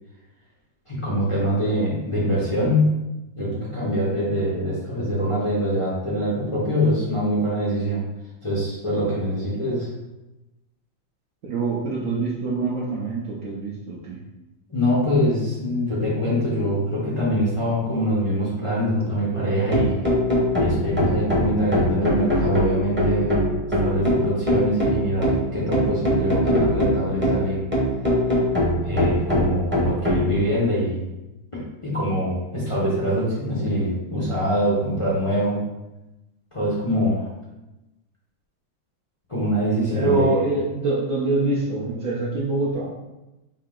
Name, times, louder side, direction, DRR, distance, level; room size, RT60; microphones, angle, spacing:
voice 1, 0.9-2.9 3.3-8.0 8.4-9.9 14.7-19.9 20.6-23.3 23.8-27.6 28.8-31.0 31.5-35.6 36.5-37.3 39.3-40.4, equal, 35° left, -7 dB, 0.4 m, -24 dB
voice 2, 11.4-14.2 39.9-42.9, right 3 dB, 65° right, -6 dB, 0.8 m, -25 dB
sound 1, 19.3-30.3, equal, 10° right, 0.6 m, -22 dB
4.9 x 2.8 x 3.7 m, 1.0 s
omnidirectional pair, 2.2 m